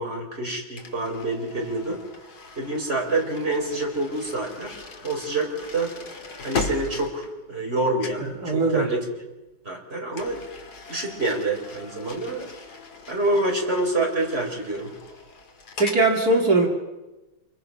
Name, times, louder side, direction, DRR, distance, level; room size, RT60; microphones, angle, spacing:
voice 1, 0.0-2.0 2.6-4.8 5.0-5.9 6.4-9.0 9.6-10.4 10.9-12.5 13.1-14.9, right 2 dB, 30° right, 0 dB, 4.8 m, -27 dB
sound 1, 0.8-7.7 8.0-8.3 10.1-16.1, left 4 dB, 55° left, 2.3 m, -38 dB
voice 2, 8.4-8.9 15.8-16.7, right 3 dB, 55° right, 0 dB, 2.9 m, -20 dB
27.0 x 24.0 x 5.6 m, 1.1 s
omnidirectional pair, 2.0 m